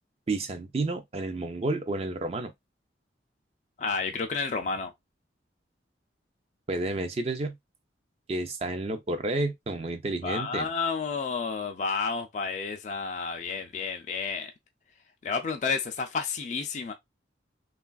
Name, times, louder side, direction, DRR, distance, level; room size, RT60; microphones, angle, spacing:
voice 1, 0.3-2.5 6.7-7.5 8.3-10.7, right 2 dB, 35° right, 0.4 m, -30 dB
voice 2, 3.8-4.9 10.2-14.5 15.2-16.9, left 5 dB, 40° left, 0.3 m, -31 dB
3.2 x 2.3 x 2.2 m
head